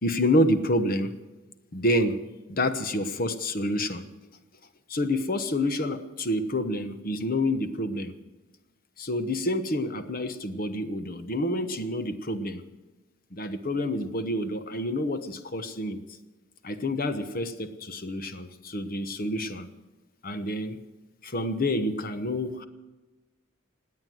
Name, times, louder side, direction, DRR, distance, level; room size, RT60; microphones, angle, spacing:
voice 1, 0.0-1.1 1.7-2.2 2.5-4.1 4.9-8.1 9.0-12.6 13.3-16.0 16.6-19.7 20.2-20.8 21.2-22.6, left 1 dB, 40° left, 10 dB, 1.0 m, -28 dB
16.5 x 9.6 x 7.8 m, 1.1 s
head